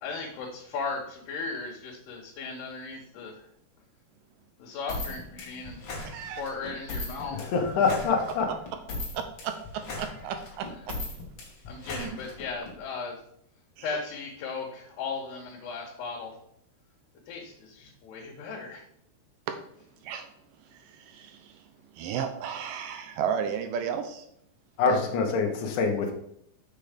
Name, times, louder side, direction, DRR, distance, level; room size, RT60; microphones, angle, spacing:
voice 1, 0.0-3.3 4.6-5.8 6.4-7.4 11.7-13.2 13.8-16.3 17.3-18.8, left 4 dB, 85° left, -2 dB, 3.4 m, -36 dB
sound 1, 4.9-12.7, left 2 dB, 40° left, 2.4 m, -38 dB
voice 2, 6.0-6.4 9.4-11.0 11.9-12.1 13.8-13.9 20.0-20.3 20.7-24.3 24.9-25.0, right 7 dB, 75° right, 7 dB, 2.0 m, -34 dB
voice 3, 7.3-8.5 24.8-26.1, left 4 dB, 60° left, 2 dB, 2.6 m, -25 dB
6.9 x 6.7 x 5.1 m, 0.71 s
omnidirectional pair, 4.5 m